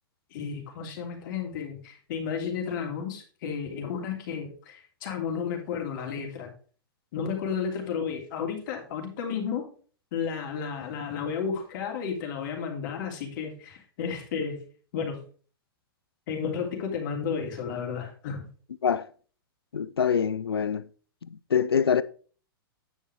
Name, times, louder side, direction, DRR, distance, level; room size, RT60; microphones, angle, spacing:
voice 1, 0.3-6.5 7.1-9.7 10.1-14.6 14.9-15.2 16.3-18.5, left 6 dB, 55° left, 3.0 m, -32 dB
voice 2, 19.7-20.8 21.3-22.0, left 7 dB, 85° left, 0.5 m, -25 dB
9.5 x 5.5 x 4.8 m
hypercardioid pair, 115°, 13 cm